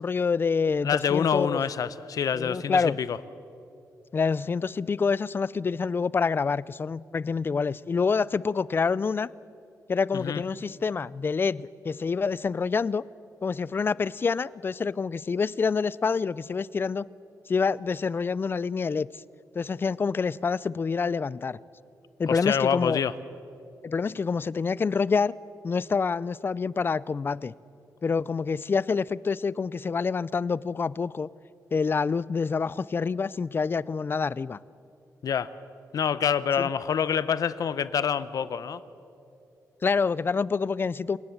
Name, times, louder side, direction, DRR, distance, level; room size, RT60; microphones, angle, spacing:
voice 1, 0.0-1.6 2.3-3.0 4.1-9.3 9.9-13.0 13.4-17.1 17.5-19.1 19.6-21.6 22.2-23.0 23.8-25.3 25.6-27.5 28.0-31.3 31.7-34.6 36.6-36.7 39.8-41.2, left 5 dB, 35° left, 0.4 m, -27 dB
voice 2, 0.8-3.2 10.1-10.4 22.3-23.1 35.2-35.5 35.9-38.8, left 7 dB, 65° left, 0.8 m, -26 dB
27.5 x 18.5 x 7.2 m
cardioid pair, 110°, 6 cm